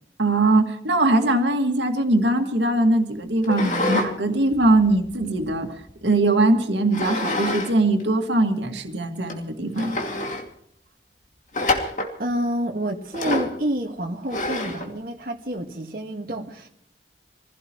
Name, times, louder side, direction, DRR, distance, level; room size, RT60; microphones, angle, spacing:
voice 1, 0.2-10.0, right 2 dB, 85° right, 4 dB, 2.1 m, -21 dB
sound 1, 3.4-4.1 4.5-5.9 6.9-7.7 8.0-8.1 8.8-8.9 9.3-9.4 9.7-10.4 11.5-12.1 13.1-13.6 14.3-14.9, left 2 dB, 45° left, 2.4 m, -27 dB
voice 2, 12.2-16.7, right 1 dB, 55° right, 0 dB, 1.8 m, -28 dB
26.0 x 16.0 x 3.1 m, 0.69 s
head